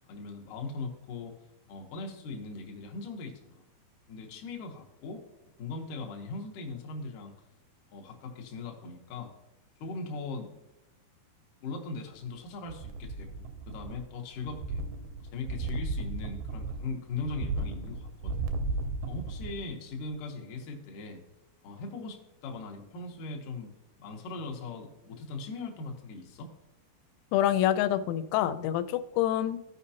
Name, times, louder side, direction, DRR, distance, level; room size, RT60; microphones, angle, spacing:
voice 1, 0.1-1.4 1.7-3.6 4.1-5.2 5.6-7.4 7.9-9.3 9.8-10.5 11.6-14.8 15.2-18.5 19.1-21.2 21.6-23.7 24.0-26.5, left 3 dB, 70° left, 2 dB, 2.0 m, -39 dB
sound 1, 12.7-14.1 14.4-19.7 20.1-20.2, right 3 dB, 85° right, 2.1 m, -35 dB
voice 2, 27.3-29.7, left 12 dB, 90° left, 12 dB, 2.9 m, -27 dB
15.0 x 5.1 x 2.8 m, 0.92 s
omnidirectional pair, 5.2 m